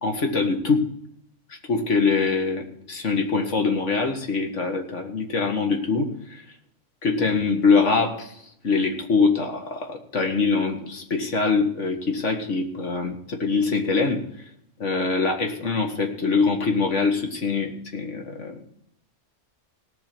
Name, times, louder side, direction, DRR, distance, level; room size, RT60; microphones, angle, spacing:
voice 1, 0.0-0.9 1.7-6.4 7.0-8.4 8.6-14.2 14.8-18.6, left 4 dB, 75° left, 3 dB, 2.2 m, -23 dB
18.5 x 6.2 x 6.0 m, 0.70 s
omnidirectional pair, 1.3 m